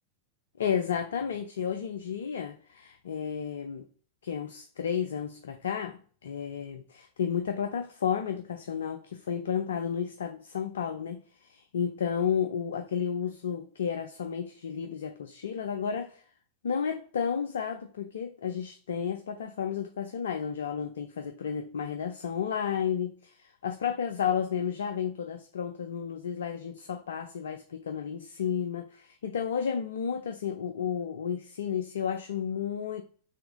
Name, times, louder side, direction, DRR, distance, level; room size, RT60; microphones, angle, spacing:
voice 1, 0.6-3.9 4.2-11.2 11.5-16.2 16.6-33.0, left 7 dB, 65° left, 0.4 m, -32 dB
4.2 x 3.3 x 3.7 m
figure-of-eight pair, 90°, 0 cm